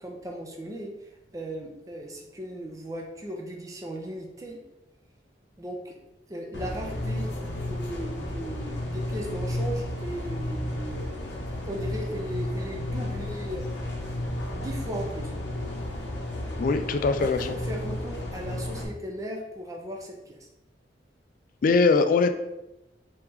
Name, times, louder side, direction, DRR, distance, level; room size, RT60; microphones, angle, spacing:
voice 1, 0.0-4.6 5.6-6.0 6.3-11.1 11.5-13.9 14.5-15.3 17.1-20.5, right 1 dB, 20° right, 1 dB, 0.5 m, -37 dB
sound 1, 6.5-18.8, left 1 dB, 80° left, 0.7 m, -32 dB
voice 2, 16.6-17.5 21.6-22.3, left 4 dB, 50° left, 9 dB, 0.3 m, -21 dB
3.1 x 2.9 x 3.5 m, 0.94 s
head